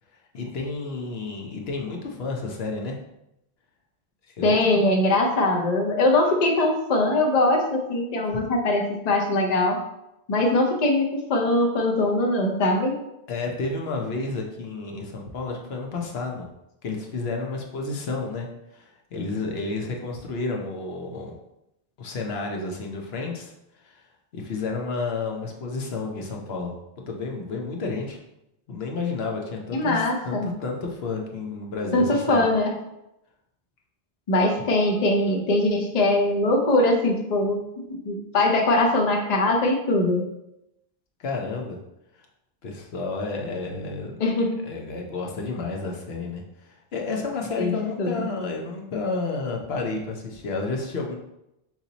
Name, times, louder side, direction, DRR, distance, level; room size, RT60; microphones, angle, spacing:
voice 1, 0.3-3.0 4.3-4.6 13.3-16.5 16.8-18.5 18.7-21.3 22.0-23.5 23.8-24.0 24.3-28.2 28.7-32.4 41.2-41.8 42.1-42.2 42.6-44.2 44.6-51.2, left 3 dB, 80° left, 1 dB, 1.0 m, -31 dB
voice 2, 4.4-9.8 10.3-13.0 29.7-30.5 31.9-32.7 34.3-37.6 37.9-40.2 44.2-44.6 47.6-47.7 48.0-48.3, left 2 dB, 45° left, 2 dB, 0.7 m, -22 dB
4.4 x 2.8 x 4.0 m, 0.88 s
omnidirectional pair, 1.0 m